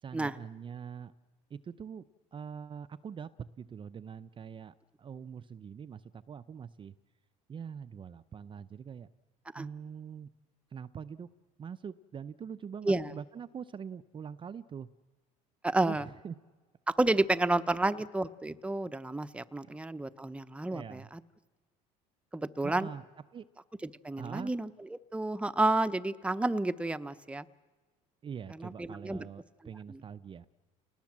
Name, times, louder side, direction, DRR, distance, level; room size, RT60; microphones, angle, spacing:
voice 1, 0.0-1.1 1.5-2.0 2.3-3.3 3.6-7.0 7.5-9.1 9.6-10.3 10.7-11.3 11.6-14.9 15.8-16.4 19.6-19.8 20.7-21.1 22.6-23.0 23.3-23.4 24.2-24.5 28.2-30.5, right 7 dB, 30° right, 12 dB, 0.7 m, -43 dB
voice 2, 15.6-16.1 16.9-21.2 22.3-22.9 23.8-27.5 28.6-29.2 29.9-30.0, right 2 dB, 5° right, 12 dB, 0.9 m, -30 dB
30.0 x 19.5 x 7.4 m, 1.3 s
supercardioid pair, 100°, 16 cm